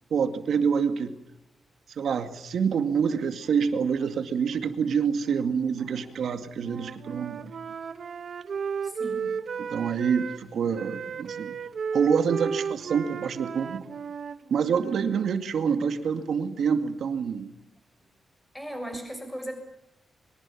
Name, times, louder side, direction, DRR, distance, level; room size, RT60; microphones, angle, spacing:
voice 1, 0.1-1.2 2.0-7.5 9.6-11.6 11.9-13.8 14.5-17.5, right 6 dB, 75° right, 9 dB, 2.2 m, -26 dB
voice 2, 5.8-6.2 7.1-7.2 8.8-9.4 18.5-19.5, right 1 dB, 5° left, 5 dB, 6.8 m, -38 dB
Wind instrument woodwind instrument, 6.6-10.4 10.7-15.3, right 6 dB, 60° right, 1.2 m, -34 dB
24.5 x 22.5 x 7.3 m, 0.84 s
wide cardioid pair, 110°, 0 cm